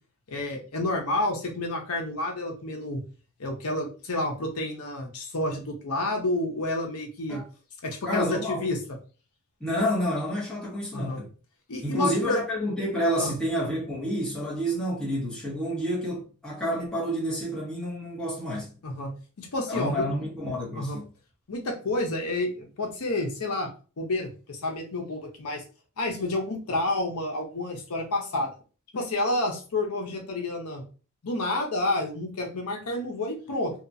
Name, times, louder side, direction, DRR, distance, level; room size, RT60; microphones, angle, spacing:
voice 1, 0.3-3.0 3.4-7.4 7.8-8.8 10.9-11.2 11.7-12.4 13.1-13.4 18.8-20.0 20.7-21.0 21.5-23.7 24.0-25.6 26.0-28.5 28.9-30.8 31.2-33.7, left 2 dB, 75° left, 0.7 m, -29 dB
voice 2, 8.1-8.7 9.6-11.3 11.8-18.7 19.7-21.1, equal, 5° left, 1.0 m, -29 dB
2.8 x 2.3 x 2.6 m
head